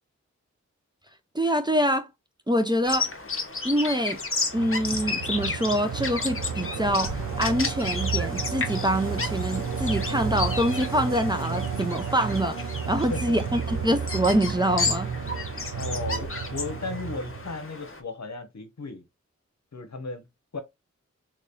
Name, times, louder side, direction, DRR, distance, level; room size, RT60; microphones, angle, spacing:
voice 1, 1.3-2.1 2.5-3.1 3.6-4.2 4.5-15.1, equal, 15° right, 0.6 m, -25 dB
Bird vocalization bird call bird song, 2.8-18.0, left 4 dB, 45° left, 1.0 m, -33 dB
sound 1, 4.5-17.6, right 6 dB, 75° right, 0.7 m, -32 dB
voice 2, 13.1-13.6 15.8-19.0 19.7-20.3 20.5-20.6, left 3 dB, 65° left, 1.1 m, -35 dB
3.7 x 3.1 x 2.6 m
cardioid pair, 45°, 30 cm